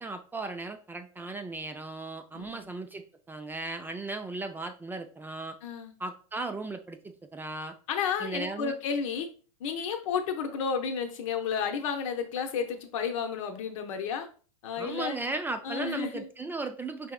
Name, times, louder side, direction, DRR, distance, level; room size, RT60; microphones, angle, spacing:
voice 1, 0.0-5.6 6.0-7.7 8.2-8.7 14.8-17.1, right 3 dB, 10° right, 7 dB, 0.3 m, -36 dB
voice 2, 2.3-2.7 5.6-5.9 7.9-9.3 9.6-14.3 14.6-15.2 15.6-16.3, left 6 dB, 70° left, 6 dB, 0.8 m, -32 dB
4.7 x 3.3 x 2.3 m, 0.39 s
hypercardioid pair, 100°, 17 cm